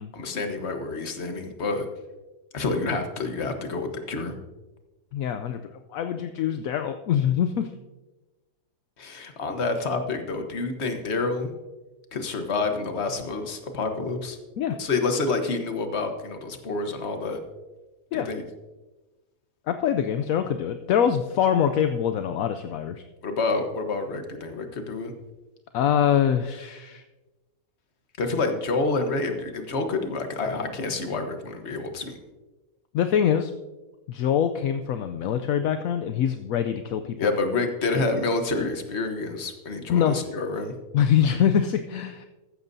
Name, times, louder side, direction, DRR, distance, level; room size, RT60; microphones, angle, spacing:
voice 1, 0.1-1.9 2.5-4.4 9.0-11.5 12.1-14.4 14.8-17.4 18.1-18.4 23.2-25.1 28.2-32.2 37.2-40.7, left 3 dB, 45° left, 6 dB, 1.3 m, -28 dB
voice 2, 5.1-5.6 5.9-7.7 14.6-14.8 18.1-18.3 19.7-23.0 25.7-27.0 32.9-33.5 34.1-37.3 37.9-38.0 39.9-40.2 40.9-42.3, left 9 dB, 70° left, 8 dB, 0.9 m, -24 dB
14.5 x 13.5 x 2.7 m, 1.1 s
omnidirectional pair, 1.7 m